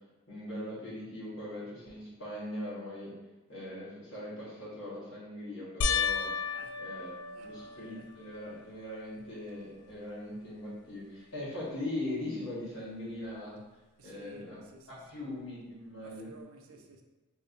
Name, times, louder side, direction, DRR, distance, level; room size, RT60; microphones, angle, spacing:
voice 1, 0.3-3.1 3.5-6.3 6.8-13.6 14.0-14.6 14.9-16.3, left 1 dB, 55° left, 1.3 m, -40 dB
sound 1, 5.8-8.4 9.0-9.6 9.9-10.0 13.2-13.3, left 6 dB, 75° left, 0.3 m, -34 dB
voice 2, 6.4-6.9 7.2-8.3 14.0-15.3 16.0-17.0, right 3 dB, 65° right, 0.4 m, -54 dB
3.1 x 2.7 x 2.5 m
head